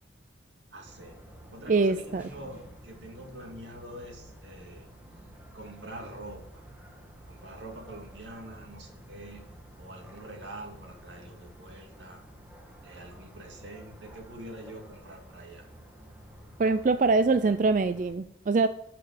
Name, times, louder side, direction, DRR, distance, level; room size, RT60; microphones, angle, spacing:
voice 1, 0.7-1.2 1.5-4.9 5.5-6.7 7.2-12.2 12.8-15.7 17.4-17.5, right 1 dB, 80° right, 2 dB, 2.4 m, -45 dB
sound 1, 0.8-18.1, right 1 dB, 10° right, 1.8 m, -51 dB
voice 2, 1.7-2.2 16.6-18.7, right 3 dB, 45° right, 11 dB, 0.4 m, -23 dB
12.5 x 5.9 x 4.9 m, 0.80 s
head